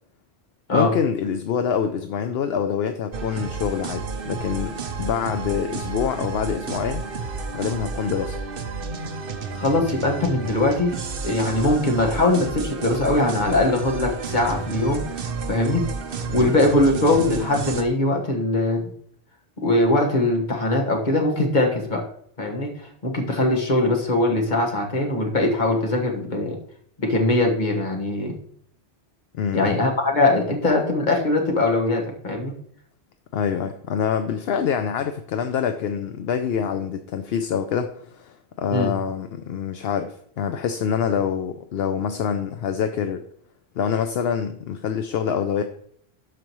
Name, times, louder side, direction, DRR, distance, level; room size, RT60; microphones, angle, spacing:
voice 1, 0.7-7.0 7.5-8.4 16.3-16.5 29.3-29.8 33.3-43.2 43.8-45.6, left 7 dB, 70° left, 8 dB, 0.8 m, -26 dB
sound 1, 3.1-17.8, right 4 dB, 60° right, 0.9 m, -31 dB
voice 2, 9.5-11.0 11.2-15.0 15.5-15.8 16.3-18.9 19.6-22.0 22.4-26.6 27.0-28.4 29.5-32.5 38.7-38.9, left 2 dB, 45° left, 1 dB, 1.6 m, -21 dB
12.5 x 5.0 x 3.0 m, 0.65 s
omnidirectional pair, 1.1 m